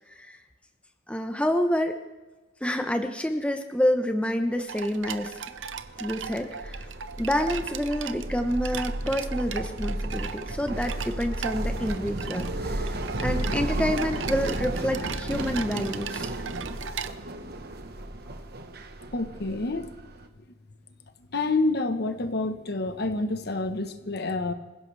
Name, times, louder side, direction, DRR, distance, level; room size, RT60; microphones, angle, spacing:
voice 1, 1.1-1.9 2.6-5.3 6.0-6.9 7.2-16.3, equal, 5° left, 6 dB, 1.0 m, -28 dB
sound 1, 4.7-17.1, right 7 dB, 85° right, 0.7 m, -38 dB
sound 2, 5.0-20.3, right 1 dB, 60° right, 1.3 m, -34 dB
voice 2, 19.1-20.0 21.3-24.5, left 2 dB, 60° left, 8 dB, 1.2 m, -28 dB
26.0 x 16.0 x 3.4 m, 1.2 s
head